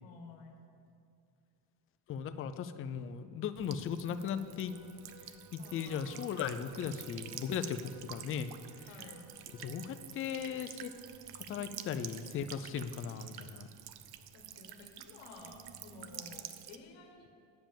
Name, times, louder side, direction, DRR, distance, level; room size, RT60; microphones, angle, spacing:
voice 1, 0.0-0.6 5.6-6.4 8.9-9.3 14.3-17.3, left 3 dB, 65° left, 4 dB, 1.3 m, -53 dB
voice 2, 2.1-4.7 5.5-8.5 8.8-8.9 9.6-10.9 11.3-13.7, left 7 dB, 30° left, 10 dB, 0.4 m, -37 dB
Buzz / Water tap faucet / Trickle dribble, 3.6-16.8, right 11 dB, 50° right, 0.6 m, -49 dB
sound 1, 4.1-11.0, equal, 10° right, 1.7 m, -59 dB
9.1 x 5.2 x 7.1 m, 2.5 s
cardioid pair, 105°, 48 cm